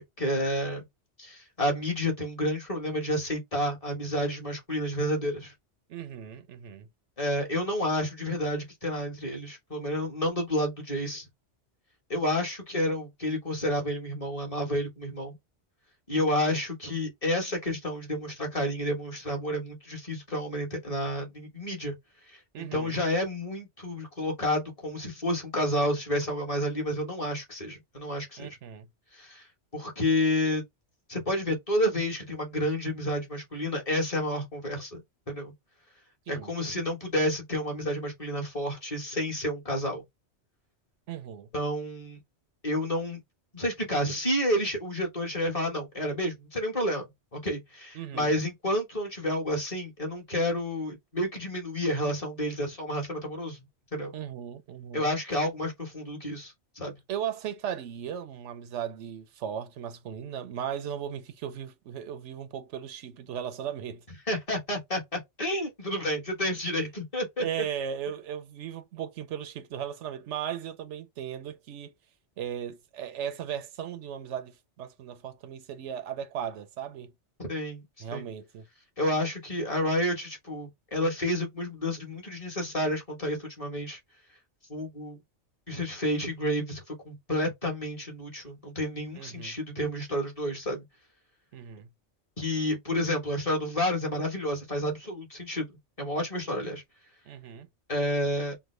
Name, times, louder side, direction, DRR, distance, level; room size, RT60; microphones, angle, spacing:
voice 1, 0.2-0.8 1.2-5.5 7.2-11.2 12.1-15.4 16.1-22.0 22.6-28.6 29.1-29.4 29.7-30.6 31.1-35.0 35.3-35.5 36.3-40.0 41.5-42.2 42.6-43.2 43.5-47.1 47.3-53.6 53.9-54.1 54.9-57.0 64.3-67.5 77.4-77.8 78.1-78.3 79.0-84.0 84.7-85.2 85.7-90.8 92.4-95.7 96.0-96.8 97.9-98.5, left 1 dB, 30° left, 1.3 m, -30 dB
voice 2, 5.9-6.9 22.5-23.0 28.4-28.9 36.3-36.5 41.1-41.5 47.9-48.3 54.1-55.1 57.1-64.0 67.4-71.9 72.4-77.1 78.0-78.7 89.2-89.6 91.5-91.9 97.3-97.7, right 9 dB, 90° right, 0.9 m, -37 dB
3.4 x 2.1 x 3.1 m
omnidirectional pair, 1.2 m